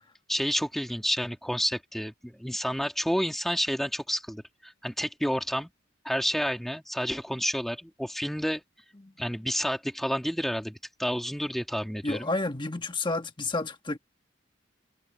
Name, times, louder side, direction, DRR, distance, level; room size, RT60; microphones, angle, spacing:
voice 1, 0.3-5.7 6.0-8.6 9.2-12.3, equal, ahead, 2.4 m, -30 dB
voice 2, 12.0-14.0, left 2 dB, 25° left, 1.5 m, -30 dB
head